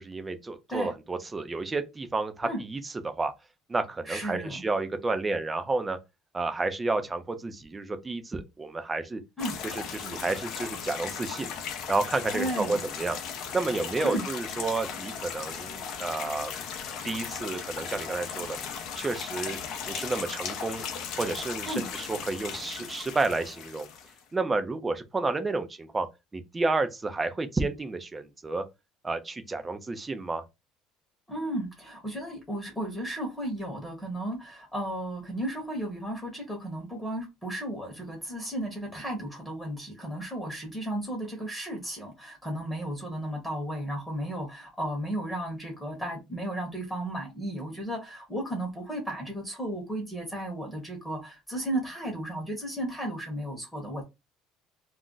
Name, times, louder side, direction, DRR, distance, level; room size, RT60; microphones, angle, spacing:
voice 1, 0.0-3.3 3.7-6.0 6.3-9.2 9.7-11.5 11.9-13.2 13.5-16.5 17.0-18.6 19.0-19.6 19.9-20.8 21.2-23.9 24.3-26.1 26.3-28.6 29.0-30.4, right 3 dB, 15° right, 0.4 m, -30 dB
voice 2, 4.0-4.6 9.4-9.6 12.3-12.8 14.0-14.2 21.6-21.9 31.3-54.0, right 1 dB, 5° left, 0.9 m, -34 dB
sound 1, 9.4-24.2, left 7 dB, 55° left, 0.5 m, -37 dB
2.3 x 2.0 x 3.8 m
cardioid pair, 155°, 0 cm